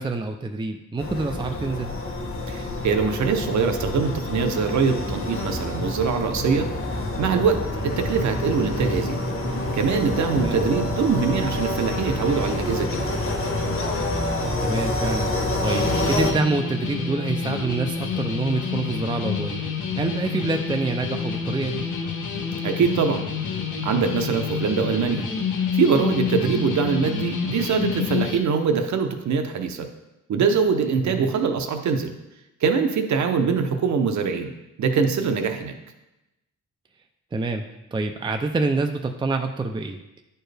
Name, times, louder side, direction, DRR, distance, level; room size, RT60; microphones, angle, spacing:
voice 1, 0.0-1.9 7.8-7.9 10.3-10.6 14.4-15.3 15.6-19.7 19.9-21.8 26.4-26.6 31.0-31.3 37.3-37.6 37.9-40.2, right 3 dB, 15° right, 5 dB, 0.4 m, -27 dB
sound 1, 1.0-16.3, left 2 dB, 40° left, 1.3 m, -27 dB
voice 2, 2.5-6.7 7.2-9.2 9.7-13.1 22.6-23.2 23.8-25.2 25.7-29.9 30.3-32.1 32.6-34.5 34.8-35.7, right 5 dB, 60° right, 6 dB, 0.8 m, -23 dB
sound 2, 15.6-28.4, left 6 dB, 70° left, 1.1 m, -28 dB
10.5 x 4.5 x 3.4 m, 0.94 s
cardioid pair, 105°, 32 cm